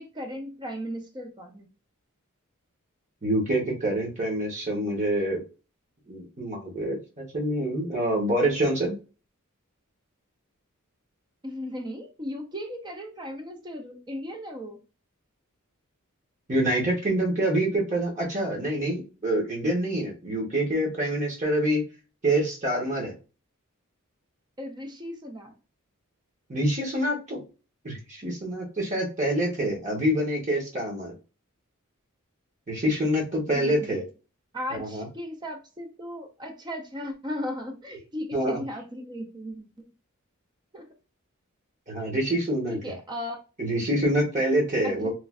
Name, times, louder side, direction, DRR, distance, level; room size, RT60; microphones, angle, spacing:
voice 1, 0.0-1.7 11.4-14.8 24.6-25.5 33.5-34.0 34.5-39.8 40.7-40.9 42.7-43.4 44.8-45.1, left 1 dB, 20° right, 0.5 m, -36 dB
voice 2, 3.2-5.4 6.1-8.9 16.5-21.8 22.2-23.1 26.5-27.4 27.8-31.1 32.7-34.0 34.7-35.1 38.3-38.6 41.9-42.8 43.6-45.1, right 1 dB, 35° right, 1.0 m, -26 dB
3.1 x 2.5 x 2.4 m
head